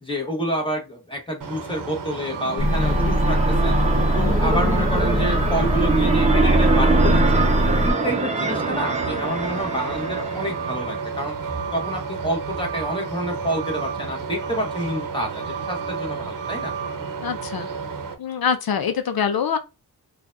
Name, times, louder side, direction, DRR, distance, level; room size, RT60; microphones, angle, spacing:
voice 1, 0.0-3.8 4.2-7.4 7.8-11.4 11.7-16.7, equal, 15° left, 1.2 m, -28 dB
Truck, 1.4-18.1, right 5 dB, 55° right, 0.8 m, -31 dB
sound 1, 2.3-11.1, right 4 dB, 20° right, 0.7 m, -25 dB
sound 2, 2.6-7.9, equal, 35° left, 1.0 m, -21 dB
voice 2, 17.2-17.7 18.2-19.6, left 7 dB, 70° left, 0.7 m, -24 dB
4.5 x 2.4 x 2.6 m
wide cardioid pair, 90°, 38 cm